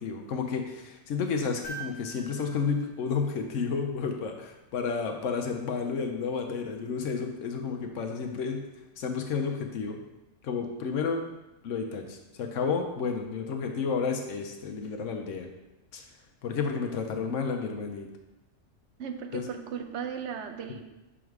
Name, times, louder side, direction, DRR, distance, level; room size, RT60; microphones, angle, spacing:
voice 1, 0.0-8.6 9.0-10.0 10.4-11.2 11.6-15.5 15.9-16.0 16.4-18.1 19.3-19.5, left 5 dB, 80° left, 3 dB, 1.0 m, -31 dB
sound 1, 1.6-4.0 6.0-6.1, right 4 dB, 30° left, 1.0 m, -45 dB
voice 2, 19.0-20.9, right 7 dB, 70° right, 7 dB, 0.9 m, -36 dB
6.3 x 3.6 x 4.6 m, 0.99 s
omnidirectional pair, 1.3 m